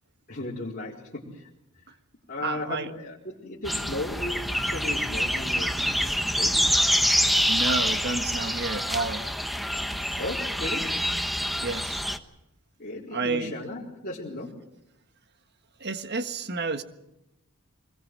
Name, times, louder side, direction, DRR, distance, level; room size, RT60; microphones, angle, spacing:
voice 1, 0.3-1.5 2.3-5.8 6.4-6.7 10.2-11.0 12.8-14.6, left 2 dB, 40° left, -6 dB, 4.3 m, -35 dB
voice 2, 2.4-2.9 7.5-9.3 11.6-12.0 13.1-13.5 15.8-16.8, right 3 dB, 50° right, 9 dB, 1.6 m, -30 dB
sound 1, 3.6-12.2, equal, ahead, 1.1 m, -26 dB
24.5 x 21.0 x 7.7 m, 0.89 s
head